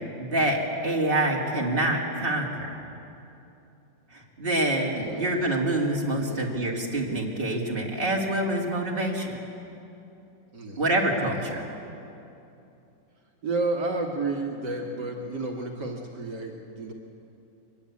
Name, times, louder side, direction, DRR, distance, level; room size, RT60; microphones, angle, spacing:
voice 1, 0.1-2.7 4.1-9.4 10.8-11.6, right 1 dB, 30° right, -1 dB, 2.9 m, -26 dB
voice 2, 4.9-5.3 6.1-6.4 10.5-10.9 11.5-11.6 13.4-16.9, right 3 dB, 65° right, 0 dB, 2.3 m, -31 dB
23.5 x 20.5 x 8.5 m, 2.8 s
omnidirectional pair, 2.0 m